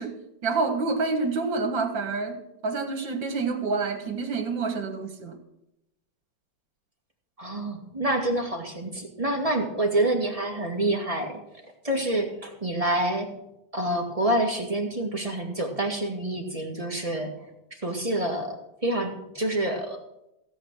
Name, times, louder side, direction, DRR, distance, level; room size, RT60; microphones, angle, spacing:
voice 1, 0.0-5.4, right 4 dB, 80° right, 6 dB, 2.6 m, -28 dB
voice 2, 7.4-11.4 11.8-13.3 13.7-20.0, right 1 dB, 20° right, 2 dB, 1.9 m, -27 dB
16.5 x 7.9 x 6.3 m, 0.85 s
omnidirectional pair, 2.0 m